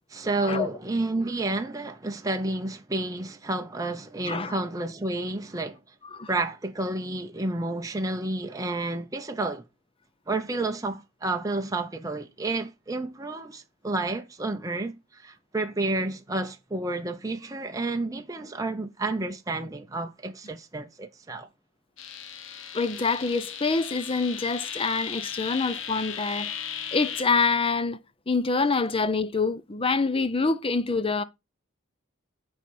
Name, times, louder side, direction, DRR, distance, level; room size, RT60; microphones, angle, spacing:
voice 1, 0.1-5.8 6.3-9.7 10.3-21.5, right 2 dB, 15° right, 0.6 m, -30 dB
sound 1, 22.0-27.2, left 8 dB, 65° left, 1.0 m, -36 dB
voice 2, 22.7-26.6 26.9-28.0 28.3-31.2, left 4 dB, 25° left, 0.6 m, -26 dB
9.0 x 4.3 x 5.3 m
head